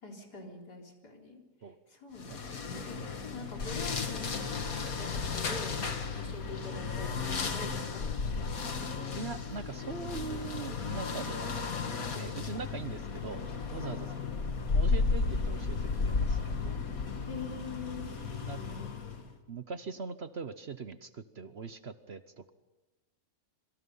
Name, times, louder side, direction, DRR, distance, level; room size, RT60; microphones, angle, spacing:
voice 1, 0.0-8.4 12.5-12.6 13.5-14.3 17.3-18.9, left 3 dB, 85° left, 1 dB, 4.6 m, -45 dB
sound 1, 2.2-19.3, left 4 dB, 60° left, 2.2 m, -34 dB
voice 2, 9.1-11.6 12.1-13.5 13.7-14.1 14.7-16.8 18.4-18.6 19.5-22.5, right 5 dB, 45° right, 11 dB, 1.0 m, -41 dB
26.5 x 24.5 x 5.6 m, 1.1 s
omnidirectional pair, 1.7 m